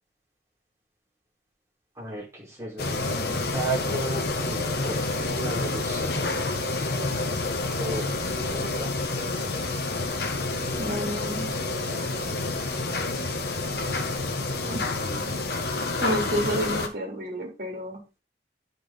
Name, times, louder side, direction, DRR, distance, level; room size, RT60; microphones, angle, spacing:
voice 1, 1.9-6.2 7.7-8.9 9.7-9.9 11.8-12.4 14.6-15.4 16.1-16.2, right 1 dB, 15° right, -6 dB, 4.7 m, -36 dB
sound 1, 2.8-16.9, left 2 dB, 60° left, 1.3 m, -28 dB
voice 2, 10.8-11.5 14.7-14.8 16.0-18.0, equal, 50° right, 1 dB, 3.1 m, -30 dB
9.0 x 5.7 x 4.0 m, 0.28 s
head